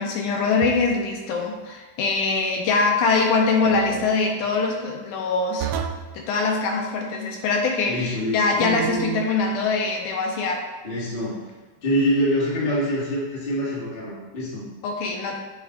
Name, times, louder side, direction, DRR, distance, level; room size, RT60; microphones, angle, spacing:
voice 1, 0.0-5.7 6.1-10.6 14.8-15.4, left 4 dB, 80° left, 1 dB, 2.0 m, -23 dB
sound 1, 0.6-1.1 3.6-4.1 5.6-6.1 8.6-9.3, right 7 dB, 85° right, 1.6 m, -30 dB
voice 2, 7.9-8.6 10.8-11.4 11.8-14.6, equal, 30° left, -7 dB, 1.1 m, -25 dB
7.8 x 3.2 x 3.8 m, 1.3 s
omnidirectional pair, 3.7 m